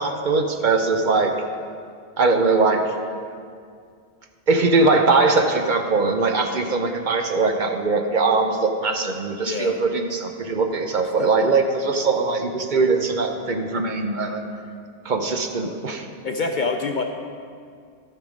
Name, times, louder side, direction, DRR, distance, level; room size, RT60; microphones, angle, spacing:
voice 1, 0.0-1.3 2.2-2.8 4.5-14.4 15.0-16.1, right 3 dB, 50° right, 5 dB, 0.8 m, -21 dB
voice 2, 9.4-9.8 11.2-11.3 16.2-17.0, left 4 dB, 55° left, 4 dB, 0.6 m, -25 dB
14.0 x 5.7 x 5.1 m, 2.2 s
omnidirectional pair, 1.1 m